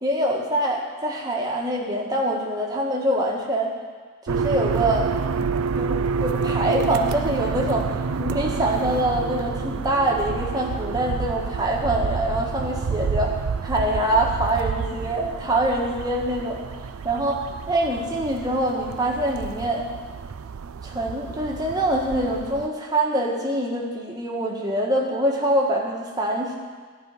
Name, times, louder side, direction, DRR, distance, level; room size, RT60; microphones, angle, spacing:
voice 1, 0.0-3.7 4.3-5.1 5.7-7.9 8.2-13.3 13.7-16.6 17.0-19.8 20.8-26.5, right 1 dB, 20° right, -1 dB, 1.5 m, -24 dB
sound 1, 4.3-22.7, right 5 dB, 80° right, 0.4 m, -29 dB
14.5 x 5.5 x 9.6 m, 1.5 s
head